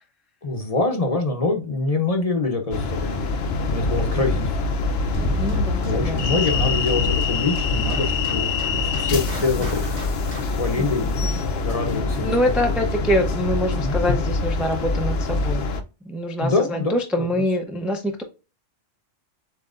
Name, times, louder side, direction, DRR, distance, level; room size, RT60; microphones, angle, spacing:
voice 1, 0.4-3.3 3.5-4.5 5.3-5.4 5.9-8.5 9.0-9.8 10.6-11.2 11.6-12.3 13.7-14.0 16.4-17.0, left 3 dB, 35° left, 0.8 m, -25 dB
sound 1, 2.7-15.8, left 4 dB, 60° left, 0.8 m, -24 dB
sound 2, 5.1-10.7, right 1 dB, 65° right, 1.6 m, -31 dB
voice 2, 5.4-6.3 9.6-9.7 10.8-11.3 12.2-15.7 16.0-18.2, equal, ahead, 0.4 m, -25 dB
7.5 x 2.9 x 2.5 m
omnidirectional pair, 1.3 m